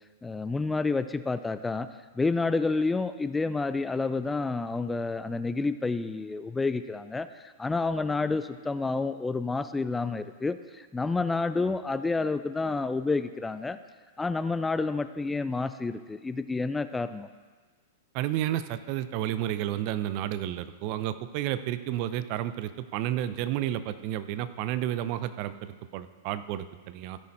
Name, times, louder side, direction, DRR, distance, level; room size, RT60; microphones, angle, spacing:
voice 1, 0.2-1.9 2.1-13.8 14.2-17.3, left 3 dB, 10° left, 12 dB, 0.4 m, -29 dB
voice 2, 18.1-27.2, right 12 dB, 50° right, 13 dB, 0.5 m, -31 dB
15.5 x 6.3 x 4.3 m, 1.4 s
hypercardioid pair, 110°, 0 cm